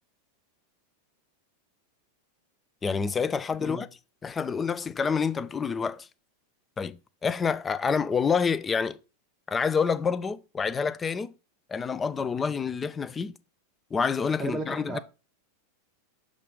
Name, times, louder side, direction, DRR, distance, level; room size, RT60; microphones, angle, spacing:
voice 1, 2.8-3.9 4.2-6.1 6.8-9.0 9.5-11.3 11.7-13.3 13.9-15.0, left 6 dB, 15° left, 0.3 m, -28 dB
voice 2, 14.4-15.0, right 2 dB, 5° right, 0.7 m, -34 dB
7.3 x 2.5 x 5.1 m
figure-of-eight pair, 90°, 0 cm